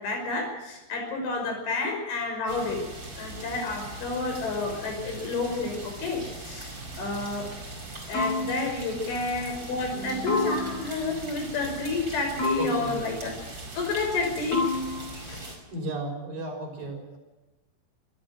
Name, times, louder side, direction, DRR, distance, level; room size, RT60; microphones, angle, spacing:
voice 1, 0.0-2.8 3.2-7.5 8.1-13.3 13.7-14.6 15.2-15.5, left 3 dB, 70° left, 3 dB, 8.0 m, -30 dB
sound 1, 2.5-15.6, right 2 dB, 20° right, 5.1 m, -40 dB
sound 2, 8.1-9.0 10.3-11.1 12.4-13.2 14.5-15.3, left 2 dB, 20° left, 5.8 m, -30 dB
voice 2, 12.6-13.0 15.7-17.2, right 2 dB, 45° right, 1 dB, 7.4 m, -34 dB
26.0 x 14.0 x 7.8 m, 1.1 s
omnidirectional pair, 5.7 m